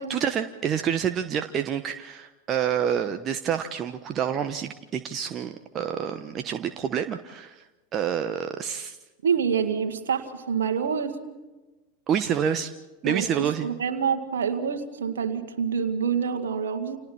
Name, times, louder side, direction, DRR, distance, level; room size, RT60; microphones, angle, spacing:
voice 1, 0.1-7.6 7.9-9.0 12.1-12.7 13.0-13.7, right 8 dB, 35° right, 8 dB, 1.0 m, -28 dB
voice 2, 9.2-11.1 13.0-17.0, right 7 dB, 70° right, 6 dB, 2.0 m, -27 dB
30.0 x 27.5 x 4.4 m, 1.1 s
figure-of-eight pair, 85°, 0 cm